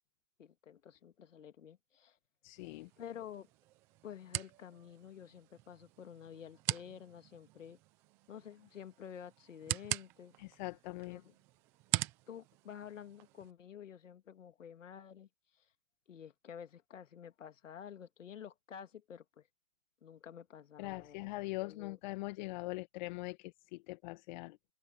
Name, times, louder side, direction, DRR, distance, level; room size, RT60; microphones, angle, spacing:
voice 1, 0.4-2.2 3.0-3.5 4.0-7.8 8.3-10.3 11.1-11.3 12.3-15.7 16.1-19.5 20.0-21.3 21.6-22.0, left 8 dB, 70° left, 2.4 m, -50 dB
voice 2, 2.4-2.9 10.4-11.2 20.8-24.6, left 22 dB, 35° left, 1.4 m, -42 dB
sound 1, 2.6-13.5, right 18 dB, 5° right, 0.4 m, -43 dB
hypercardioid pair, 135°, 39 cm